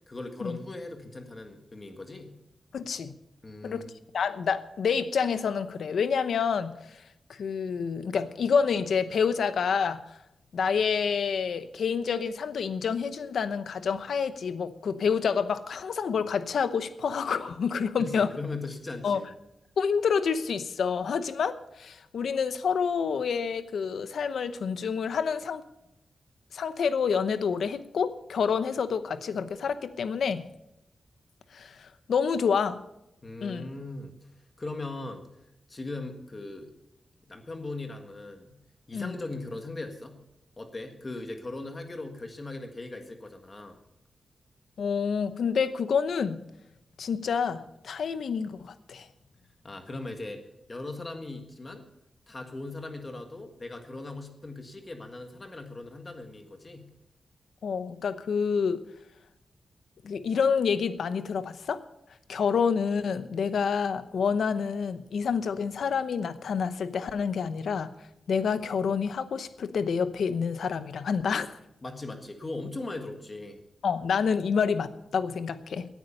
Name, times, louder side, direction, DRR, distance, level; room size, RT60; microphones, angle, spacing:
voice 1, 0.1-2.3 3.4-4.0 18.0-19.3 33.2-34.1 34.6-35.3 35.7-36.7 37.3-38.6 38.9-40.2 40.6-43.8 49.6-50.4 50.7-51.8 52.3-56.9 71.8-73.6, left 2 dB, 25° left, 5 dB, 1.7 m, -39 dB
voice 2, 2.7-3.1 3.6-3.9 4.1-6.7 7.4-10.0 10.5-18.3 19.0-19.2 19.8-25.6 26.5-30.4 31.5-32.8 33.4-33.7 38.9-39.1 44.8-46.4 47.0-49.1 57.6-58.8 60.0-61.8 62.3-67.9 68.3-71.5 73.8-75.9, left 6 dB, 80° left, 12 dB, 0.9 m, -28 dB
17.5 x 9.5 x 5.5 m, 0.86 s
wide cardioid pair, 175°, 0 cm